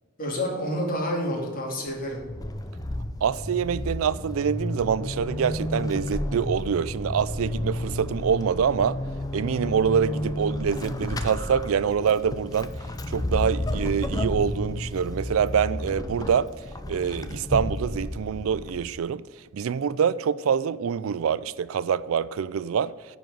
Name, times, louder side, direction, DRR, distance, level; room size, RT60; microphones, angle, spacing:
voice 1, 0.2-2.2, equal, 45° left, 2.8 m, -28 dB
Vehicle / Accelerating revving vroom / Squeak, 1.9-19.1, left 1 dB, 20° left, 0.6 m, -32 dB
voice 2, 3.2-9.0 9.3-12.7 13.1-16.5 16.9-19.2 19.5-23.2, right 7 dB, 75° right, 0.4 m, -25 dB
10.0 x 4.9 x 7.6 m
head